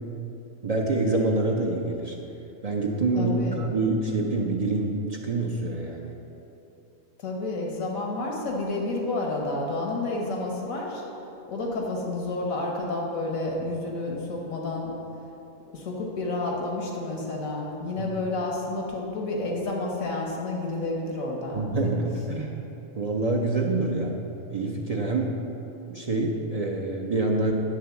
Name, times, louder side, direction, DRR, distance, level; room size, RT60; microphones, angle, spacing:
voice 1, 0.6-2.2 2.6-6.1 18.0-18.1 21.5-22.7 23.0-25.3 25.9-27.5, right 2 dB, 50° right, 0 dB, 0.4 m, -26 dB
voice 2, 3.1-3.6 7.2-11.0 11.5-14.9 15.7-22.0, left 2 dB, 90° left, -1 dB, 1.5 m, -30 dB
10.0 x 3.7 x 7.0 m, 2.9 s
omnidirectional pair, 1.4 m